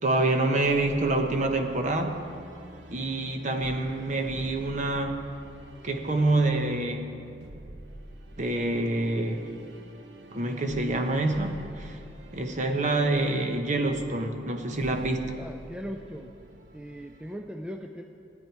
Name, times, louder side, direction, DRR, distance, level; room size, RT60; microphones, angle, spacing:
voice 1, 0.0-2.2 2.9-5.2 5.8-7.1 8.4-9.4 10.3-12.0 12.3-15.3, right 2 dB, 40° right, 4 dB, 1.0 m, -26 dB
sound 1, 0.6-17.4, right 1 dB, 75° right, 1.1 m, -47 dB
voice 2, 15.4-16.3 16.7-18.0, equal, 5° right, 4 dB, 0.4 m, -39 dB
16.0 x 9.9 x 4.6 m, 2.5 s
head